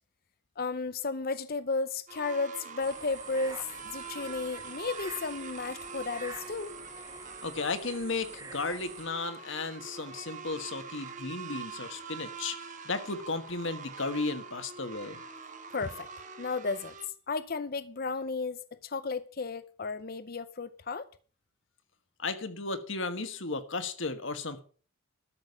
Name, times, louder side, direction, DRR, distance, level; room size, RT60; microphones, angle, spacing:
voice 1, 0.6-6.8 15.7-16.1 16.4-16.9 17.3-21.1, left 4 dB, 45° left, 0.6 m, -34 dB
sound 1, 2.1-17.1, right 5 dB, 35° right, 1.4 m, -44 dB
sound 2, 2.8-9.1, right 4 dB, 15° right, 1.4 m, -46 dB
voice 2, 7.4-15.2 22.2-24.6, left 3 dB, 60° left, 1.5 m, -34 dB
13.0 x 6.3 x 8.1 m
head